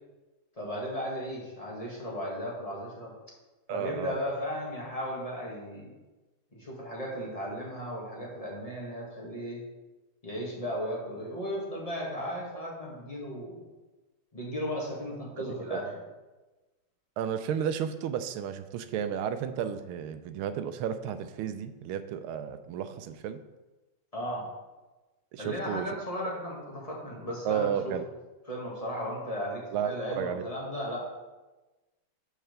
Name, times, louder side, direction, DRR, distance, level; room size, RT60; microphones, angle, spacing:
voice 1, 0.6-3.1 3.7-5.9 6.5-9.6 10.2-13.7 14.3-15.9 24.1-24.5 25.4-27.9 28.5-31.0, equal, 20° left, -4 dB, 1.7 m, -35 dB
voice 2, 3.7-4.2 15.7-15.8 17.2-23.4 25.3-25.9 27.4-28.0 29.7-30.5, right 8 dB, 85° right, 10 dB, 1.5 m, -32 dB
6.4 x 4.8 x 6.6 m, 1.1 s
omnidirectional pair, 2.3 m